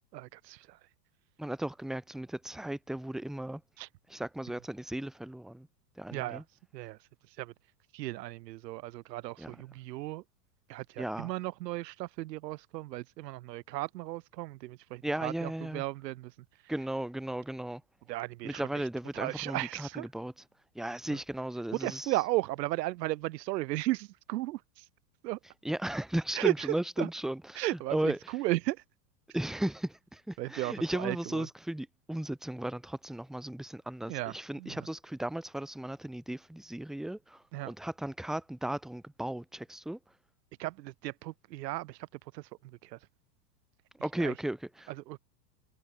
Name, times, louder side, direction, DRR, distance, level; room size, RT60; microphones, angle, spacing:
voice 1, 0.1-0.6 3.8-3.9 6.1-6.4 6.7-7.0 7.4-7.5 7.9-10.2 10.7-16.3 18.1-18.6 19.1-20.1 21.8-24.6 25.2-25.4 26.4-26.5 27.0-27.1 27.6-28.8 30.4-31.5 34.1-34.3 34.6-34.8 37.5-37.7 40.6-42.0 42.3-42.4 42.9-43.0 44.2-44.3 45.1-45.2, right 17 dB, 85° right, 0.6 m, -35 dB
voice 2, 1.4-3.6 4.1-5.7 6.0-6.4 9.4-9.6 11.0-11.3 15.0-15.8 16.7-17.8 18.4-20.3 20.7-22.1 25.6-28.3 29.3-40.0 44.0-44.9, right 1 dB, ahead, 0.8 m, -35 dB
supercardioid pair, 130°, 48 cm